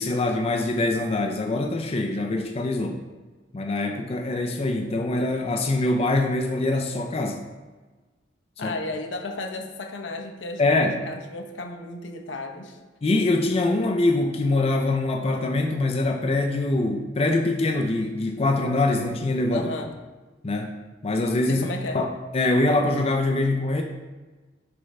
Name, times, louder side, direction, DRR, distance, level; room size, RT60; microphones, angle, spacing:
voice 1, 0.0-3.0 3.5-7.5 8.6-8.7 10.6-11.0 13.0-19.7 20.4-20.8 21.0-21.6 21.9-22.1 22.3-23.8, left 2 dB, 35° left, 3 dB, 0.5 m, -24 dB
voice 2, 8.6-12.8 19.5-19.9 21.5-22.0, left 2 dB, 85° left, 4 dB, 0.8 m, -34 dB
6.5 x 3.4 x 5.3 m, 1.3 s
head